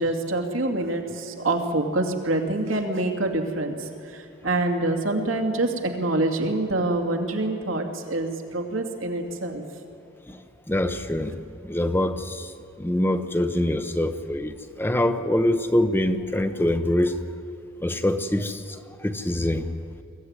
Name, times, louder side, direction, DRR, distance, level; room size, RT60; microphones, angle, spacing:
voice 1, 0.0-9.6, right 2 dB, 85° right, 3 dB, 2.5 m, -26 dB
voice 2, 10.7-12.5 12.8-17.2 17.8-19.7, left 1 dB, 10° left, 9 dB, 0.8 m, -24 dB
23.0 x 15.0 x 9.7 m, 2.4 s
head